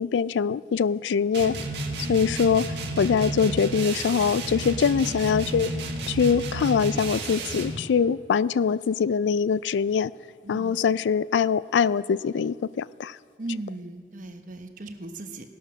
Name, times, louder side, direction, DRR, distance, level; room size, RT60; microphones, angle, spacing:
voice 1, 0.0-1.6 2.1-2.7 3.0-5.7 6.1-10.1 10.5-13.2, left 6 dB, 80° left, 19 dB, 0.3 m, -23 dB
sound 1, 1.3-7.8, right 1 dB, 65° right, 1.7 m, -32 dB
voice 2, 13.4-15.5, right 2 dB, 45° right, 6 dB, 1.0 m, -37 dB
17.0 x 12.0 x 6.2 m, 2.2 s
head